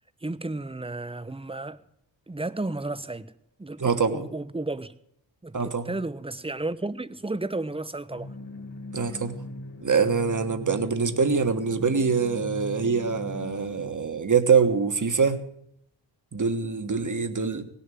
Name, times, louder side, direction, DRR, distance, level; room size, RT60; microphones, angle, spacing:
voice 1, 0.2-1.8 2.3-3.3 3.6-3.8 4.1-4.9 5.4-8.3, right 2 dB, 10° right, 0.7 m, -33 dB
voice 2, 3.8-4.3 5.5-5.9 8.9-9.4 9.8-15.4 16.3-17.6, right 5 dB, 40° right, 1.4 m, -24 dB
sound 1, 8.1-13.9, left 1 dB, 65° left, 1.9 m, -39 dB
17.0 x 6.9 x 9.1 m
cardioid pair, 60°, 46 cm